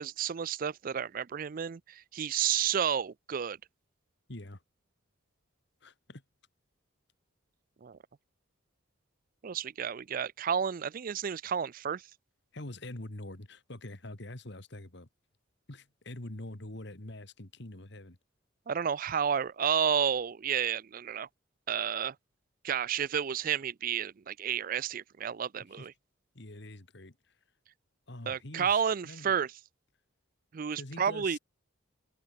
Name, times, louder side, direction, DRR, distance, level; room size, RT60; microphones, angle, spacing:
voice 1, 0.0-3.6 7.8-8.0 9.4-12.0 18.7-21.3 21.7-22.1 22.6-25.9 28.3-29.5 30.5-31.4, right 8 dB, 45° right, 0.4 m, -31 dB
voice 2, 4.3-4.6 5.8-6.2 12.5-15.1 15.7-18.2 25.7-25.9 26.3-27.3 28.1-29.3 30.7-31.4, left 1 dB, 60° left, 2.2 m, -45 dB
head